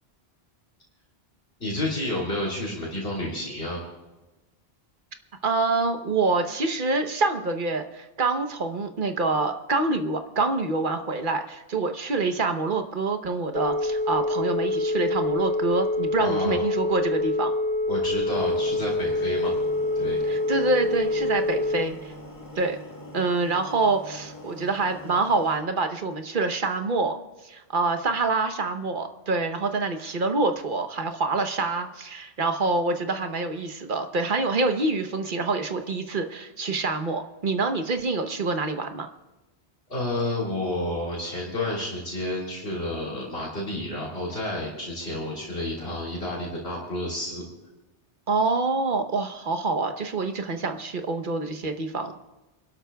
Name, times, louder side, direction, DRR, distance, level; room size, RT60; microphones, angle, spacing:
voice 1, 1.6-3.9 16.2-16.6 17.9-19.5 19.9-20.2 39.9-47.4, left 1 dB, 70° left, -4 dB, 3.5 m, -30 dB
voice 2, 5.4-17.5 20.2-22.1 22.6-22.8 23.1-27.2 27.4-39.1 48.3-52.1, right 3 dB, 55° right, 6 dB, 1.1 m, -26 dB
Telephone, 13.5-21.9, left 2 dB, 10° left, 0.6 m, -26 dB
sound 1, 18.3-25.6, left 1 dB, 30° left, 1.6 m, -43 dB
29.0 x 12.5 x 2.3 m, 1.1 s
omnidirectional pair, 1.1 m